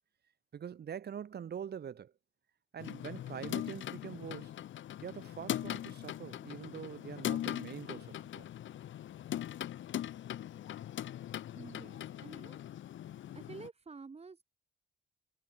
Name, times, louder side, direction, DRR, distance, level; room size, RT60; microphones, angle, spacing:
voice 1, 0.5-2.1 2.7-4.6 5.0-8.5, right 8 dB, 55° right, 4.0 m, -44 dB
sound 1, 2.8-13.7, left 12 dB, 75° left, 4.0 m, -40 dB
voice 2, 11.5-12.6 13.3-14.4, right 4 dB, 30° right, 6.3 m, -50 dB
cardioid pair, 90°, 20 cm